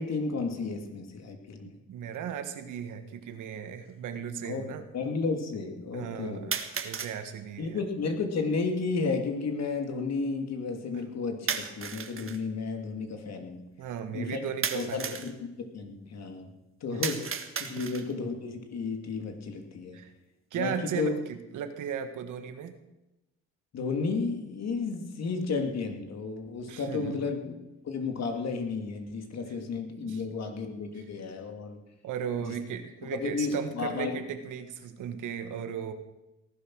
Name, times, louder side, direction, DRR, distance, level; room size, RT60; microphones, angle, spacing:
voice 1, 0.0-1.8 4.4-4.6 4.9-6.4 7.6-13.6 14.1-14.4 14.7-15.5 15.7-16.5 16.8-20.0 20.5-21.1 23.7-27.6 27.8-31.8 32.4-32.5 33.1-34.1, left 4 dB, 60° left, 4 dB, 2.8 m, -32 dB
voice 2, 1.9-4.8 5.9-6.6 6.8-7.7 13.8-15.2 19.9-20.1 20.5-22.7 26.7-27.3 30.0-30.2 32.0-35.9, right 8 dB, 80° right, 8 dB, 1.7 m, -36 dB
sound 1, 2.1-2.2 3.2-3.3 6.5-7.2 11.5-12.4 14.6-15.3 17.0-18.2, right 6 dB, 45° right, 1.7 m, -34 dB
18.5 x 11.5 x 6.4 m, 0.97 s
cardioid pair, 90°, 30 cm